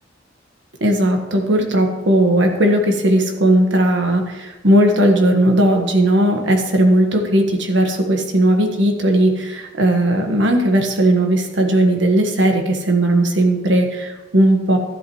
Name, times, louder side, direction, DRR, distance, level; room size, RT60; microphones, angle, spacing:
voice 1, 0.8-14.8, right 1 dB, 80° right, 3 dB, 1.5 m, -16 dB
12.5 x 11.0 x 3.2 m, 1.1 s
head